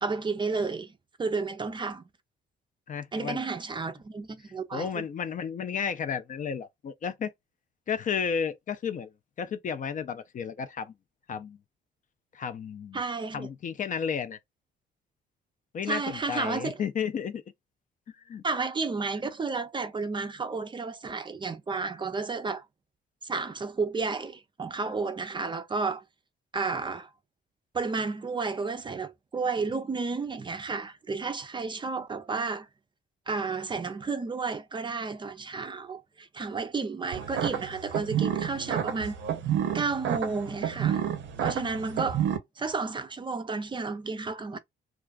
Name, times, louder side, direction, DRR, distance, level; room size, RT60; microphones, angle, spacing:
voice 1, 0.0-0.9 1.2-2.1 3.1-5.0 12.9-13.5 15.9-16.8 18.4-22.7 23.2-26.0 26.5-27.1 27.7-32.7 33.3-39.2 39.7-41.0 41.4-42.2 42.6-44.6, right 4 dB, 25° right, 0.4 m, -32 dB
voice 2, 2.9-3.4 4.7-7.3 7.9-9.1 9.4-10.9 11.3-11.6 12.3-13.0 13.3-14.4 15.7-17.4 18.3-18.4, left 7 dB, 40° left, 0.4 m, -32 dB
sound 1, 37.1-42.4, right 9 dB, 70° right, 0.6 m, -30 dB
2.3 x 2.3 x 2.3 m
cardioid pair, 85°, 20 cm